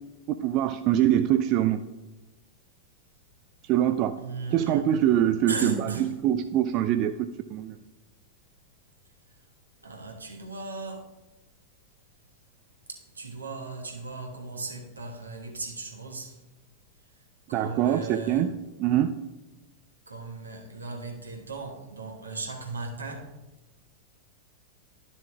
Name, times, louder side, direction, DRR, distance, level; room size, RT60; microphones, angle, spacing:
voice 1, 0.4-1.8 3.7-4.1 4.5-7.1 7.5-7.7 17.5-18.5 18.8-19.1, right 11 dB, 40° right, 9 dB, 0.3 m, -24 dB
voice 2, 4.2-4.9 5.5-6.1 9.8-11.1 12.9-16.4 17.5-18.4 20.1-23.3, right 3 dB, 80° right, 1 dB, 1.4 m, -37 dB
12.0 x 7.0 x 2.4 m, 1.1 s
figure-of-eight pair, 90°, 0 cm